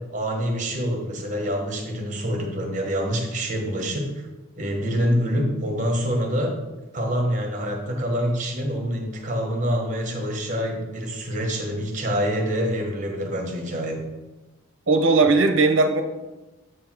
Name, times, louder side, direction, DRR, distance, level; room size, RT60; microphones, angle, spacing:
voice 1, 0.0-4.1 4.6-6.5 6.9-14.0, equal, 35° right, 1 dB, 1.1 m, -26 dB
voice 2, 14.9-16.0, right 3 dB, 60° right, 5 dB, 0.7 m, -18 dB
7.8 x 3.5 x 6.1 m, 1.1 s
head